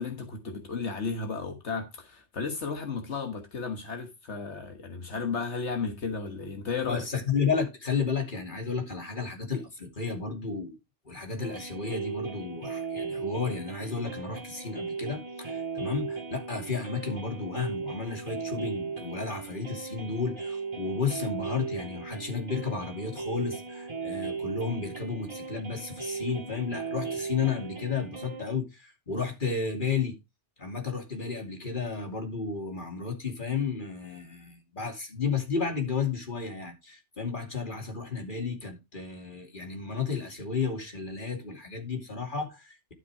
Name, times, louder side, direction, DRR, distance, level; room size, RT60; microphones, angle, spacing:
voice 1, 0.0-7.0, left 5 dB, 80° left, 1.6 m, -34 dB
voice 2, 6.8-10.8 11.0-30.2 30.6-42.9, left 5 dB, 45° left, 2.9 m, -32 dB
sound 1, 11.4-28.4, right 5 dB, 25° right, 1.9 m, -37 dB
12.0 x 5.6 x 4.7 m
omnidirectional pair, 1.2 m